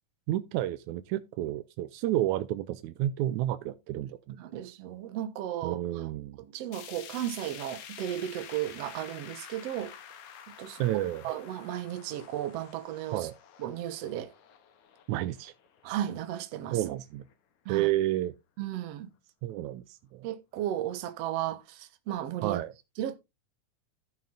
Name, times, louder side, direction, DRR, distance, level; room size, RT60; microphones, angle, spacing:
voice 1, 0.3-4.4 5.6-6.4 10.8-11.2 13.1-13.3 15.1-15.5 16.7-17.3 17.7-18.3 19.4-20.3 22.4-22.7, right 14 dB, 75° right, 1.8 m, -30 dB
voice 2, 4.4-6.1 6.5-9.9 10.6-10.8 11.2-13.3 13.6-14.3 15.8-16.8 17.7-17.9 18.6-19.1 20.2-22.6 23.0-23.2, right 12 dB, 60° right, 1.9 m, -35 dB
sound 1, 6.7-16.9 17.3-17.4 17.8-17.9 18.7-18.8, left 9 dB, 65° left, 2.7 m, -49 dB
13.5 x 5.8 x 3.7 m
omnidirectional pair, 3.9 m